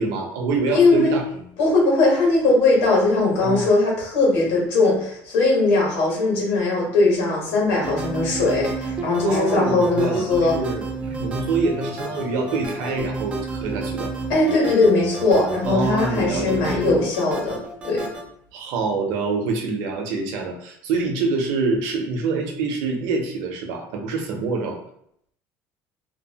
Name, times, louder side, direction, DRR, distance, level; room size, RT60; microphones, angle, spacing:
voice 1, 0.0-1.5 3.4-3.7 9.2-10.2 10.5-14.1 15.7-16.7 18.5-24.8, right 3 dB, 70° right, 1 dB, 0.6 m, -26 dB
voice 2, 0.7-1.1 1.6-10.5 14.3-18.1, left 3 dB, 75° left, -3 dB, 1.5 m, -19 dB
sound 1, 7.8-18.2, right 3 dB, 15° right, 0.3 m, -30 dB
2.8 x 2.0 x 2.8 m, 0.70 s
cardioid pair, 175°, 7 cm